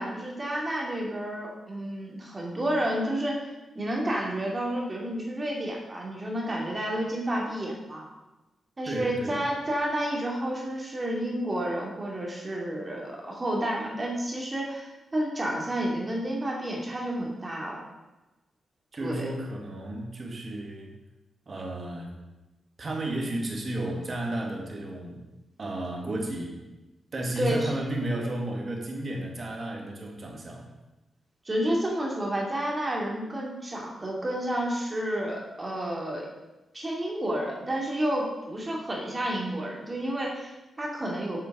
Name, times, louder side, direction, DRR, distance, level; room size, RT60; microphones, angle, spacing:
voice 1, 0.0-3.4 3.7-8.1 8.8-17.8 19.0-19.3 27.4-27.7 31.4-36.3 36.7-41.4, right 1 dB, 25° right, -2 dB, 2.7 m, -30 dB
voice 2, 8.9-9.4 18.9-20.9 21.5-22.1 22.8-25.2 25.6-26.6 27.1-30.6, right 1 dB, 40° right, 0 dB, 2.1 m, -33 dB
7.8 x 6.8 x 6.1 m, 1.0 s
cardioid pair, 110°, 0 cm